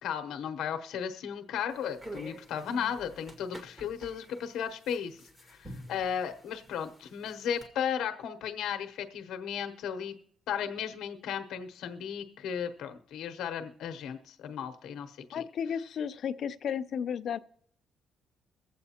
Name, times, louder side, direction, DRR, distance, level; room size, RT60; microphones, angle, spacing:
voice 1, 0.0-5.2 5.4-10.1 10.5-15.4, left 8 dB, 85° left, 7 dB, 0.8 m, -35 dB
sound 1, 1.7-7.7, right 1 dB, 15° right, 1.7 m, -49 dB
voice 2, 15.3-17.4, left 8 dB, 55° left, 12 dB, 0.5 m, -34 dB
23.0 x 7.8 x 2.8 m, 0.65 s
cardioid pair, 150°, 0 cm